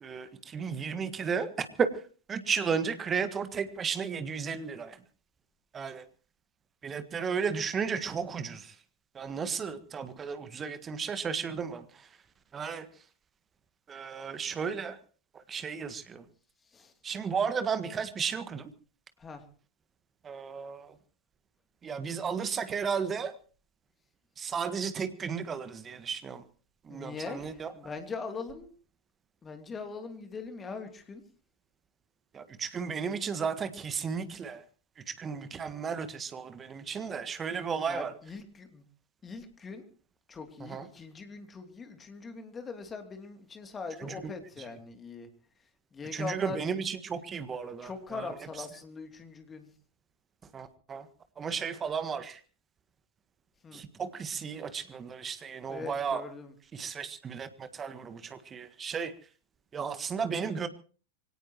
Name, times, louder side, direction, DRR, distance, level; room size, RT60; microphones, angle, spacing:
voice 1, 0.0-2.0 2.3-5.0 5.7-6.0 6.8-8.7 9.1-12.1 12.5-12.9 13.9-15.0 15.3-16.2 17.0-18.7 20.2-21.0 21.8-23.4 24.4-26.4 26.8-27.7 32.3-34.6 35.1-38.1 40.6-40.9 44.0-44.2 46.1-48.3 50.5-51.1 51.4-52.4 53.7-56.2 56.7-59.1 59.7-60.7, right 6 dB, 20° right, 11 dB, 1.6 m, -34 dB
voice 2, 26.9-28.7 29.4-31.2 37.9-38.8 39.2-39.9 40.3-45.3 45.9-46.6 47.8-49.7 53.6-53.8 55.7-56.5, left 4 dB, 20° left, 6 dB, 2.9 m, -41 dB
24.5 x 18.0 x 3.1 m, 0.38 s
figure-of-eight pair, 90°, 0 cm